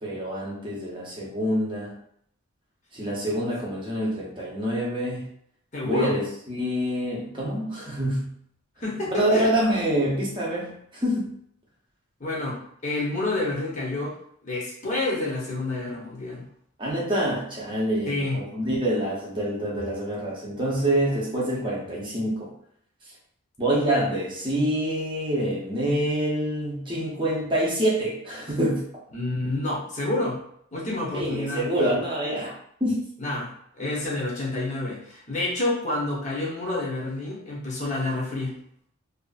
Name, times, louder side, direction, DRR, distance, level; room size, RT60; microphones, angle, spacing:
voice 1, 0.0-1.9 2.9-5.3 5.8-8.3 9.1-11.3 16.8-22.5 23.6-28.9 31.1-33.0, right 1 dB, 20° right, -4 dB, 0.7 m, -26 dB
voice 2, 5.7-6.2 8.8-9.5 12.2-14.2 14.4-16.5 18.1-18.5 29.1-31.7 33.2-38.6, left 2 dB, 35° left, -5 dB, 0.8 m, -29 dB
2.6 x 2.4 x 2.4 m, 0.67 s
head